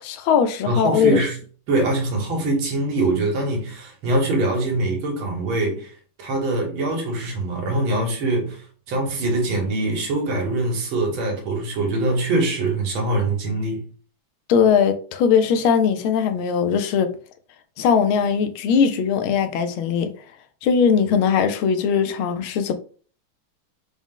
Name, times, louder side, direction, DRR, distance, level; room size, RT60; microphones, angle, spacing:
voice 1, 0.0-1.2 14.5-17.1 17.8-20.1 20.6-22.7, left 7 dB, 90° left, 1.4 m, -19 dB
voice 2, 0.7-1.4 1.7-5.9 6.2-13.8, right 2 dB, 85° right, 2.0 m, -23 dB
4.8 x 2.1 x 3.7 m
omnidirectional pair, 2.2 m